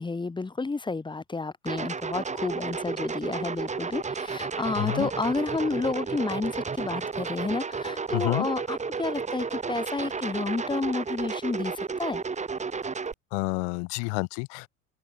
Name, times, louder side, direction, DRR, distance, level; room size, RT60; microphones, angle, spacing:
voice 1, 0.0-12.2, left 3 dB, 10° left, 2.1 m, -31 dB
sound 1, 1.7-13.1, right 5 dB, 15° right, 3.6 m, -32 dB
voice 2, 4.8-5.1 8.1-8.5 13.3-14.7, left 40 dB or more, 55° left, 3.4 m, -29 dB
open air
figure-of-eight pair, 85°, 42 cm